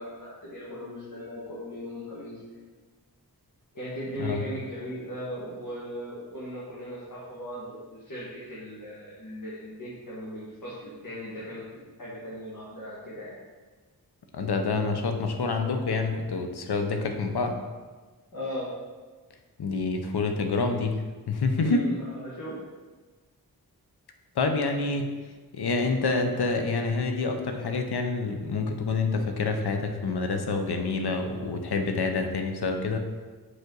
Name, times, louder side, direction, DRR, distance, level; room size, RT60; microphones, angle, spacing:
voice 1, 0.0-2.4 3.7-13.4 18.3-18.7 21.5-22.6, equal, 55° left, -8 dB, 1.8 m, -38 dB
voice 2, 14.3-17.6 19.6-21.0 21.3-21.8 24.4-25.1 25.5-33.0, left 3 dB, 80° left, 5 dB, 0.8 m, -27 dB
5.8 x 5.4 x 3.9 m, 1.3 s
cardioid pair, 55°, 39 cm